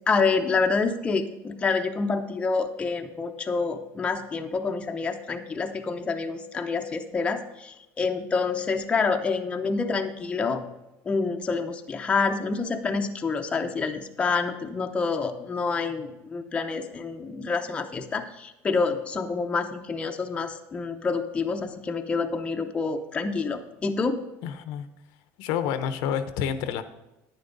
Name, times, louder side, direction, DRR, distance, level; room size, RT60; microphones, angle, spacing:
voice 1, 0.1-10.6 11.0-24.2, left 4 dB, 15° left, 4 dB, 0.7 m, -27 dB
voice 2, 24.4-24.8 25.4-26.8, left 8 dB, 70° left, 11 dB, 0.8 m, -28 dB
10.5 x 9.6 x 3.9 m, 0.98 s
cardioid pair, 155°, 7 cm